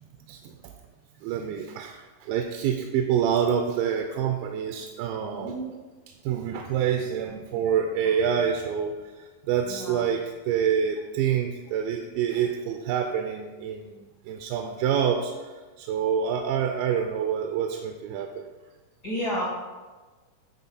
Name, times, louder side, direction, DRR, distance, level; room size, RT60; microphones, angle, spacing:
voice 1, 0.3-0.7 1.2-5.6 6.2-18.5, right 8 dB, 85° right, 4 dB, 2.3 m, -27 dB
voice 2, 5.3-5.6 9.6-10.0 19.0-19.4, equal, 55° left, -6 dB, 1.0 m, -31 dB
9.0 x 4.6 x 4.2 m, 1.3 s
omnidirectional pair, 4.1 m